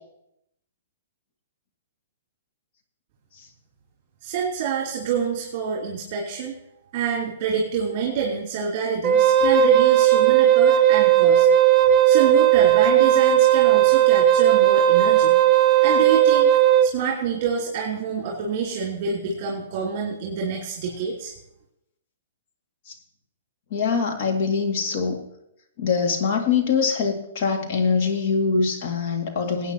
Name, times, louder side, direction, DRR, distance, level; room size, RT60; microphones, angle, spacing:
voice 1, 4.2-6.5 6.9-11.5 12.0-15.4 15.8-16.5 16.8-21.3, right 6 dB, 40° right, -3 dB, 3.1 m, -27 dB
Wind instrument woodwind instrument, 9.0-16.9, right 11 dB, 25° right, 0.7 m, -16 dB
voice 2, 23.7-25.2 25.8-29.7, left 5 dB, 50° left, 3 dB, 2.2 m, -23 dB
19.5 x 8.9 x 2.9 m, 0.79 s
hypercardioid pair, 145°, 0 cm